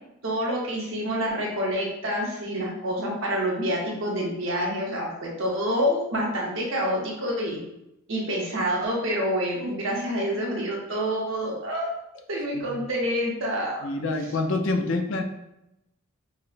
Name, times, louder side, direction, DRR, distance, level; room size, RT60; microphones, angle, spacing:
voice 1, 0.2-7.6 8.1-11.9 12.3-13.9, equal, 70° right, -3 dB, 0.9 m, -27 dB
voice 2, 13.8-15.2, left 2 dB, 65° left, 5 dB, 0.4 m, -27 dB
5.2 x 2.1 x 2.5 m, 0.87 s
head